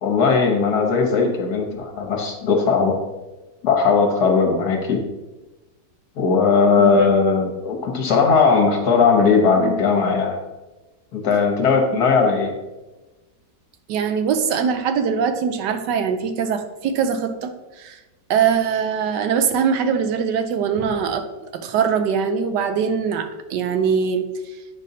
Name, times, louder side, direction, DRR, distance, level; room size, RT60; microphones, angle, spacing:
voice 1, 0.0-3.0 3.6-5.0 6.2-10.4 11.1-12.5, left 5 dB, 65° left, 2 dB, 1.5 m, -18 dB
voice 2, 6.8-7.1 13.9-18.0 18.3-21.3 21.5-24.3, right 6 dB, 80° right, 8 dB, 1.2 m, -22 dB
8.2 x 5.2 x 2.7 m, 1.1 s
omnidirectional pair, 1.9 m